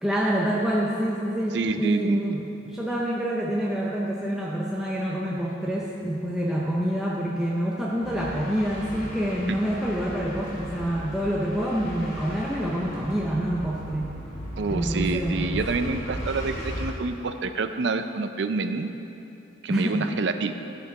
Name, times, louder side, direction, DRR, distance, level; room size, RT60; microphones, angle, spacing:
voice 1, 0.0-14.2 14.7-15.6 19.7-20.1, equal, 5° right, -5 dB, 0.6 m, -27 dB
voice 2, 1.5-2.2 9.5-9.6 14.6-18.9 19.6-20.5, right 4 dB, 60° right, 9 dB, 0.4 m, -27 dB
sound 1, 8.0-16.9, equal, 35° left, 1.9 m, -36 dB
13.5 x 5.8 x 4.8 m, 2.9 s
head